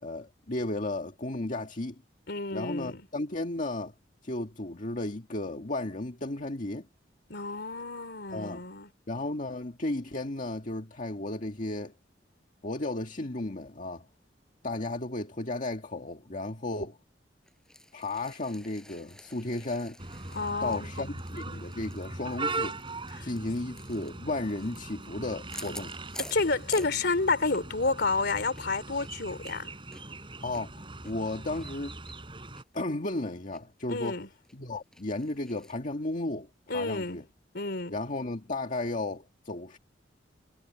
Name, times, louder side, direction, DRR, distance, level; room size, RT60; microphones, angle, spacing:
voice 1, 0.0-2.0 2.5-3.9 4.2-6.9 8.3-8.6 9.1-11.9 12.6-14.1 14.6-17.0 17.9-20.0 20.6-22.8 23.2-25.9 30.4-32.0 32.7-34.2 34.5-37.2 37.9-39.8, left 2 dB, 45° left, 1.8 m, -34 dB
voice 2, 2.3-3.1 7.3-8.9 20.3-21.1 23.1-23.3 26.3-29.7 33.9-34.3 36.7-37.2 37.5-37.9, left 3 dB, 65° left, 3.4 m, -30 dB
sound 1, 17.4-27.7 28.0-28.1 28.5-31.7 32.0-32.1 32.5-32.6 33.0-33.6 34.0-34.1 34.4-35.7, left 1 dB, 5° left, 6.1 m, -49 dB
sound 2, 20.0-32.6, right 3 dB, 30° right, 6.7 m, -40 dB
head